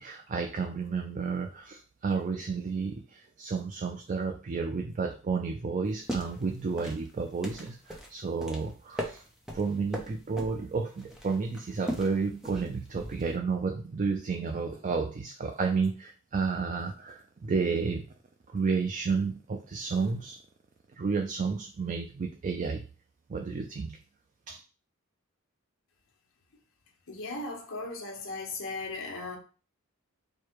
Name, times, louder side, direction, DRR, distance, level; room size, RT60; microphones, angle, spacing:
voice 1, 0.0-9.2 9.5-18.1 18.5-20.4 20.9-22.8 23.3-24.0 24.5-24.6, right 4 dB, 35° right, 0.4 m, -31 dB
sound 1, 5.9-13.4, equal, ahead, 0.7 m, -40 dB
voice 2, 27.1-29.4, left 3 dB, 60° left, 1.1 m, -37 dB
4.7 x 2.2 x 4.6 m
head